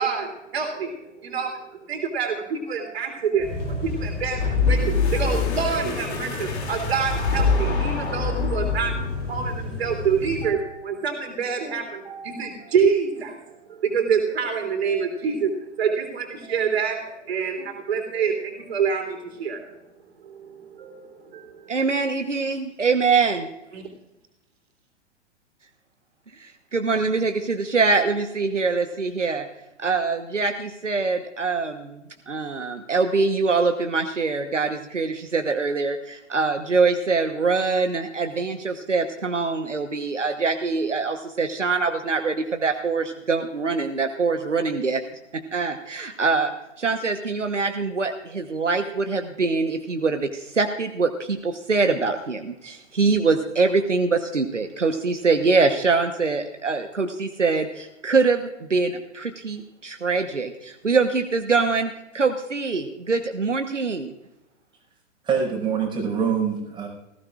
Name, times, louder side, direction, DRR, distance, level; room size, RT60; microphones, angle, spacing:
voice 1, 0.0-8.9 9.3-19.6 20.2-21.8 23.7-23.8, right 6 dB, 60° right, 3 dB, 3.5 m, -27 dB
sound 1, 3.4-10.4, left 2 dB, 30° left, 5.7 m, -32 dB
sound 2, 4.2-9.3, left 4 dB, 60° left, 2.8 m, -25 dB
voice 2, 21.7-23.5 26.4-29.4 29.8-45.0 45.5-46.5 46.8-64.1, right 4 dB, 85° right, 6 dB, 1.2 m, -24 dB
voice 3, 65.2-66.9, right 6 dB, 15° right, -2 dB, 5.3 m, -24 dB
19.0 x 16.0 x 2.5 m, 0.91 s
figure-of-eight pair, 110°, 36 cm